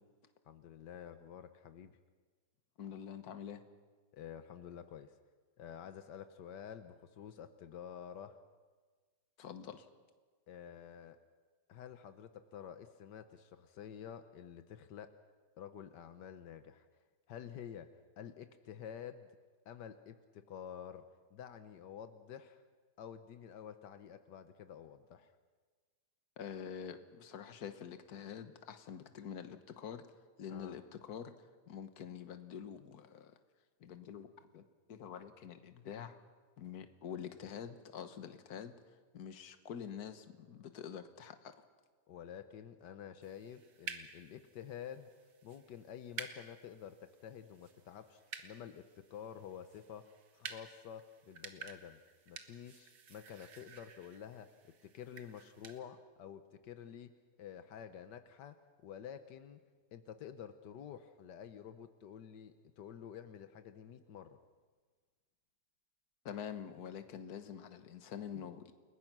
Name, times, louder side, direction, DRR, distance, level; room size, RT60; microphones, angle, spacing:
voice 1, 0.5-2.0 4.1-5.1 5.6-8.4 10.5-11.2 11.7-15.2 15.6-16.9 17.3-19.3 19.6-22.6 23.0-25.3 30.5-30.8 42.1-45.1 45.4-52.0 52.3-58.6 58.8-59.6 59.9-64.4, left 9 dB, 85° left, 9 dB, 1.6 m, -50 dB
voice 2, 2.8-3.6 9.4-9.9 26.4-30.0 30.4-33.3 33.8-34.6 34.9-36.2 36.6-38.7 39.1-41.5 66.2-68.7, left 8 dB, 65° left, 9 dB, 1.7 m, -46 dB
sound 1, 43.2-55.8, right 6 dB, 85° right, 2.0 m, -52 dB
29.5 x 20.5 x 6.1 m, 1.4 s
omnidirectional pair, 1.8 m